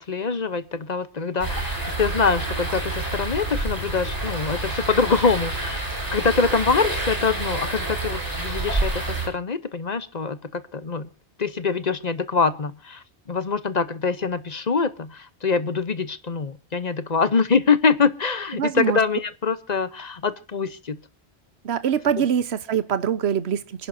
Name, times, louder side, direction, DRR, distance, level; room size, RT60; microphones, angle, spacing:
voice 1, 0.0-5.8 6.1-11.1 11.4-21.0, left 5 dB, 40° left, 14 dB, 0.9 m, -24 dB
sound 1, 1.4-9.3, right 2 dB, 15° right, 7.5 m, -28 dB
voice 2, 18.5-19.0 21.6-23.9, right 8 dB, 70° right, 13 dB, 1.2 m, -24 dB
29.0 x 11.0 x 2.7 m, 0.31 s
omnidirectional pair, 1.2 m